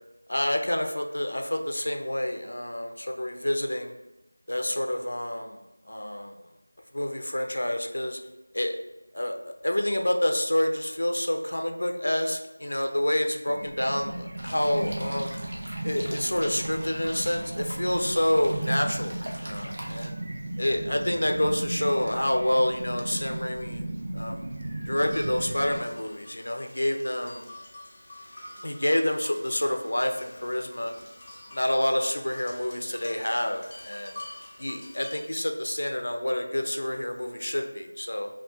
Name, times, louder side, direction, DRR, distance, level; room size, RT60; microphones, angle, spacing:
voice 1, 0.3-3.9 4.5-5.6 5.9-6.3 6.9-8.2 8.5-8.8 9.1-15.4 15.8-20.1 20.6-23.8 24.1-24.4 24.9-27.5 28.6-30.9 31.5-34.2 34.6-38.3, left 1 dB, 70° left, 4 dB, 0.6 m, -28 dB
sound 1, 13.5-25.8, right 1 dB, 35° right, 0.5 m, -35 dB
sound 2, 14.4-20.1, equal, 55° right, 0.8 m, -42 dB
sound 3, 24.9-35.2, left 1 dB, 30° left, 0.6 m, -47 dB
5.3 x 2.4 x 2.4 m, 1.0 s
figure-of-eight pair, 175°, 0 cm